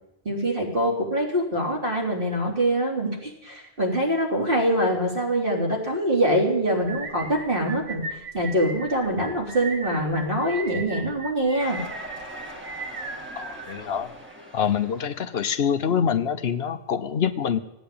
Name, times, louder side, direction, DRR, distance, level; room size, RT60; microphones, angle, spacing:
voice 1, 0.3-11.8, right 1 dB, 55° right, -2 dB, 3.8 m, -24 dB
sound 1, 6.9-14.2, right 3 dB, 90° right, 1.7 m, -37 dB
sound 2, 11.6-15.7, equal, 10° right, 1.8 m, -42 dB
voice 2, 13.4-14.1 14.5-17.6, left 8 dB, 75° left, 11 dB, 1.0 m, -25 dB
16.5 x 9.2 x 8.6 m, 0.93 s
omnidirectional pair, 1.1 m